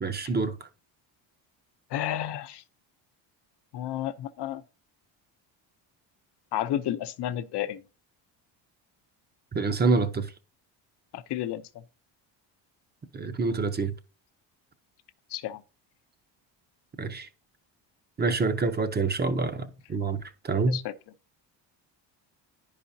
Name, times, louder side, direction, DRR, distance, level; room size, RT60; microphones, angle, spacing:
voice 1, 0.0-0.6 9.5-10.3 13.1-13.9 17.0-17.3 18.2-20.8, right 4 dB, 20° right, 0.6 m, -27 dB
voice 2, 1.9-2.6 3.7-4.6 6.5-7.8 11.1-11.8 15.3-15.6 20.7-20.9, left 12 dB, 60° left, 0.7 m, -31 dB
10.0 x 4.9 x 2.7 m
cardioid pair, 100°, 46 cm